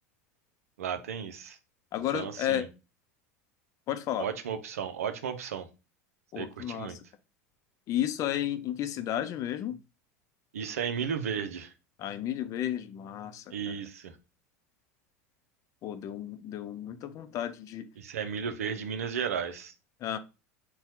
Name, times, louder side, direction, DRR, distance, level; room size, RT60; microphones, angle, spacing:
voice 1, 0.8-1.6 2.1-2.7 4.2-5.7 6.4-7.0 10.5-11.7 13.5-14.1 18.0-19.7, right 7 dB, 80° right, 10 dB, 0.6 m, -34 dB
voice 2, 1.9-2.7 3.9-4.3 6.3-7.0 7.9-9.8 12.0-13.4 15.8-17.9 18.7-18.8 20.0-20.2, left 11 dB, 45° left, 10 dB, 0.6 m, -32 dB
4.2 x 2.3 x 4.4 m, 0.29 s
hypercardioid pair, 80°, 8 cm